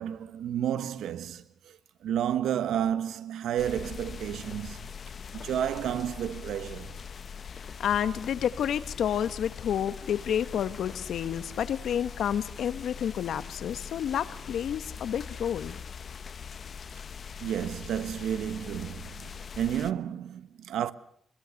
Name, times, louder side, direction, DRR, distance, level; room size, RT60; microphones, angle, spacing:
voice 1, 0.0-1.8 2.0-4.8 5.3-7.0 17.4-20.9, right 10 dB, 90° right, 1.2 m, -31 dB
sound 1, 3.6-19.9, left 6 dB, 45° left, 1.0 m, -42 dB
voice 2, 7.8-15.8, left 9 dB, 75° left, 1.3 m, -30 dB
25.5 x 22.0 x 6.5 m
cardioid pair, 115°, 0 cm